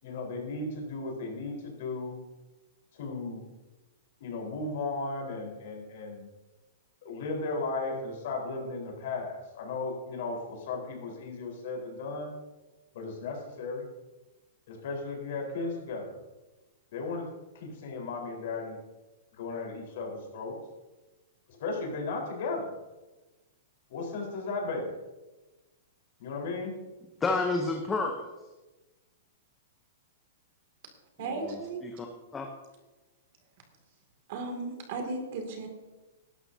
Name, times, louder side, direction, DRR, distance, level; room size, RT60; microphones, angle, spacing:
voice 1, 0.0-2.2 2.9-3.4 4.2-6.3 7.0-12.3 12.9-13.9 14.7-16.1 16.9-17.3 17.5-18.8 19.4-20.6 21.5-22.7 23.9-24.9 26.2-26.7, left 3 dB, 50° left, 0 dB, 4.3 m, -35 dB
voice 2, 27.2-28.3 31.3-32.1 32.3-32.5, left 3 dB, 10° left, 3 dB, 0.8 m, -30 dB
voice 3, 31.2-31.8 34.3-35.7, right 3 dB, 40° right, 4 dB, 2.5 m, -35 dB
18.5 x 12.5 x 2.8 m, 1.1 s
supercardioid pair, 175°, 0 cm